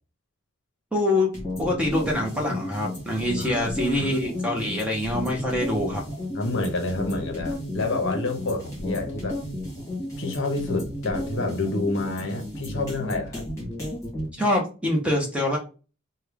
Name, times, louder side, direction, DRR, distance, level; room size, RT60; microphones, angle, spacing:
voice 1, 0.9-1.3 1.6-6.0 14.3-15.6, left 1 dB, 5° right, 0.7 m, -25 dB
sound 1, 1.3-14.3, left 1 dB, 15° left, 1.4 m, -33 dB
voice 2, 3.4-4.1 6.3-9.4 10.2-13.4, left 2 dB, 55° left, 0.7 m, -28 dB
3.1 x 2.2 x 3.5 m
head